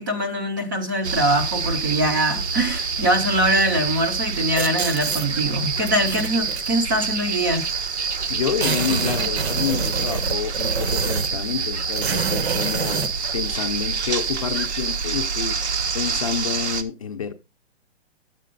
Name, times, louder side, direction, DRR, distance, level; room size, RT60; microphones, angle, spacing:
voice 1, 0.0-7.6, right 1 dB, 20° right, 0.6 m, -23 dB
sound 1, 1.0-16.8, right 5 dB, 85° right, 1.2 m, -27 dB
sound 2, 4.6-5.3 5.9-6.7 7.6-7.7 8.0-8.1 8.3-11.4 11.9-13.1, right 5 dB, 70° right, 1.2 m, -27 dB
voice 2, 8.3-13.0 13.3-15.6 15.9-17.3, left 7 dB, 30° left, 0.6 m, -28 dB
10.0 x 7.5 x 3.8 m
hypercardioid pair, 170°, 33 cm